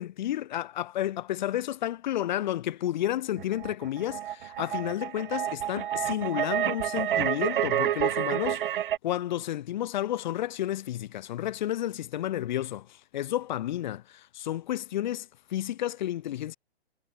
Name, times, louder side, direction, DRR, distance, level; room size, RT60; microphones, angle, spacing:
voice 1, 0.0-8.6 9.0-12.9 13.1-16.6, left 12 dB, 45° left, 1.2 m, -31 dB
sound 1, 3.4-9.0, right 11 dB, 50° right, 0.6 m, -29 dB
hypercardioid pair, 150°, 33 cm